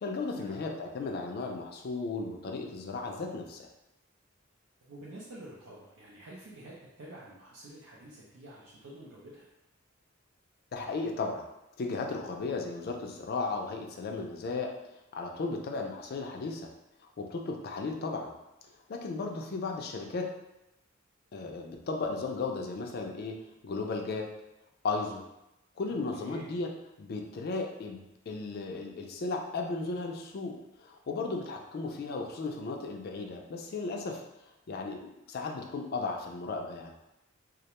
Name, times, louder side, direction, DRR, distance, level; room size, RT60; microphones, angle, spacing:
voice 1, 0.0-3.7 10.7-11.4 11.8-14.8 15.1-16.7 17.2-18.3 18.9-20.3 21.3-23.4 23.6-24.3 24.8-25.2 25.8-26.7 27.0-34.2 34.7-36.9, left 3 dB, 45° left, 2 dB, 0.3 m, -35 dB
voice 2, 4.9-9.5 26.2-26.5, right 1 dB, 80° right, -7 dB, 0.5 m, -48 dB
2.3 x 2.1 x 2.9 m, 0.90 s
head